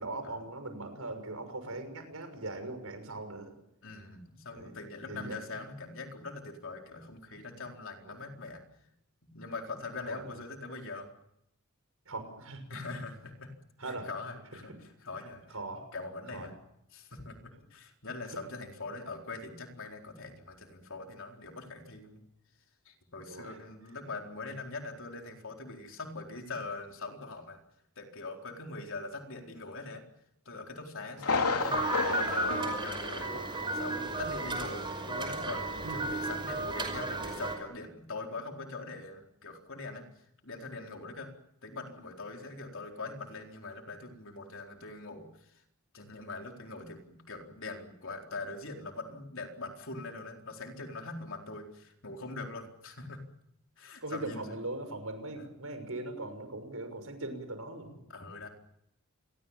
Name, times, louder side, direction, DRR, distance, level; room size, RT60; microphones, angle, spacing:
voice 1, 0.0-3.5 4.5-4.7 5.1-5.4 8.1-8.2 10.1-10.2 12.1-12.6 13.8-14.1 15.5-15.9 16.3-16.5 23.3-23.5 35.8-36.0 54.0-58.0, right 2 dB, 70° right, 8 dB, 6.3 m, -40 dB
voice 2, 3.8-8.6 9.3-11.1 12.7-13.5 13.8-15.6 15.9-16.6 16.9-22.2 22.9-27.6 28.0-30.0 30.5-40.0 40.4-41.3 41.6-45.6 45.9-53.2 53.8-54.6 55.4-55.5 58.1-58.5, left 3 dB, 60° left, 3 dB, 4.2 m, -42 dB
Thunder, 31.2-33.8 34.0-34.1 34.7-34.8, left 4 dB, 90° left, 3.2 m, -32 dB
sound 1, 31.6-37.6, right 2 dB, 20° right, 5.5 m, -34 dB
28.0 x 22.5 x 7.4 m, 0.80 s
head